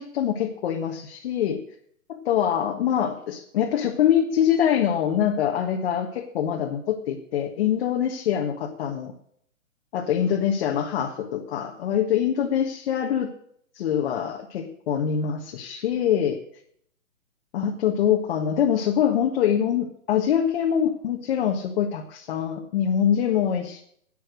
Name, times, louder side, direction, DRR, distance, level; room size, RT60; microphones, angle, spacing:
voice 1, 0.0-1.6 2.1-9.1 9.9-13.3 13.7-16.4 17.5-23.8, left 9 dB, 45° left, 1 dB, 1.6 m, -24 dB
11.0 x 9.2 x 6.5 m, 0.66 s
hypercardioid pair, 140°, 42 cm